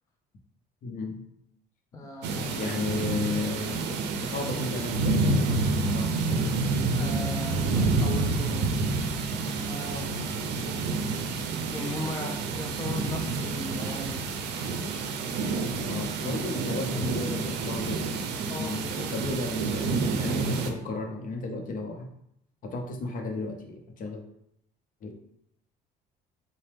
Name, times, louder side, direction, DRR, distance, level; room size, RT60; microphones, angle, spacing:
voice 1, 0.8-1.2 2.4-3.9 4.2-6.4 15.8-18.1 18.5-19.9 20.1-22.1 22.6-24.2 25.0-25.1, left 3 dB, 55° left, 2 dB, 0.7 m, -34 dB
voice 2, 1.9-2.6 2.9-3.0 6.9-8.8 9.3-10.1 11.7-14.3 18.5-19.1, left 1 dB, 20° left, 1 dB, 0.4 m, -38 dB
sound 1, 2.2-20.7, right 3 dB, 85° right, 0.5 m, -28 dB
4.1 x 2.2 x 3.3 m, 0.75 s
cardioid pair, 110°, 17 cm